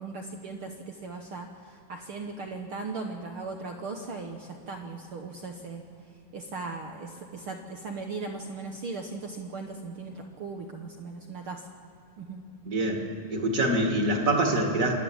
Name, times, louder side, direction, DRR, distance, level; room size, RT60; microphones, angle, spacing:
voice 1, 0.0-5.8 6.3-11.7 12.2-12.4, right 3 dB, 70° right, 3 dB, 1.3 m, -38 dB
voice 2, 12.7-14.9, right 1 dB, 30° right, 2 dB, 1.9 m, -25 dB
27.0 x 11.5 x 8.7 m, 2.7 s
omnidirectional pair, 3.9 m